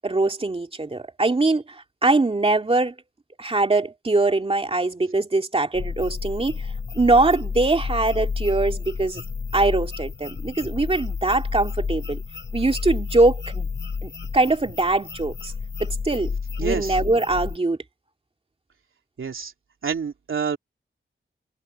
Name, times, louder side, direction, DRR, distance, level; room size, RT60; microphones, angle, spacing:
voice 1, 0.0-1.6 2.0-2.9 3.4-6.7 6.9-9.2 9.5-12.2 12.5-13.7 14.0-15.5 15.8-16.3 16.6-17.8, right 2 dB, 30° right, 2.5 m, -22 dB
sound 1, 5.7-17.6, left 5 dB, 65° left, 4.9 m, -31 dB
voice 2, 16.6-17.0 19.2-19.5 19.8-20.6, right 6 dB, 85° right, 3.1 m, -27 dB
wide cardioid pair, 125°, 20 cm